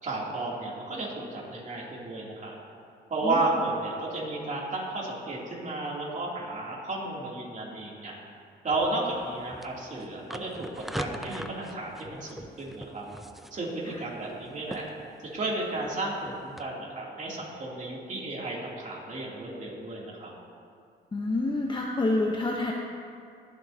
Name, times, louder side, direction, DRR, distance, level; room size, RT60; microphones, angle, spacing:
voice 1, 0.0-2.5 3.1-8.1 8.6-13.0 13.5-14.8 15.3-20.3, right 2 dB, 40° right, -4 dB, 2.9 m, -33 dB
sound 1, 8.7-16.6, equal, ahead, 0.5 m, -43 dB
voice 2, 21.1-22.7, left 2 dB, 25° left, -1 dB, 0.9 m, -27 dB
21.5 x 7.5 x 2.8 m, 2.4 s
cardioid pair, 90°, 20 cm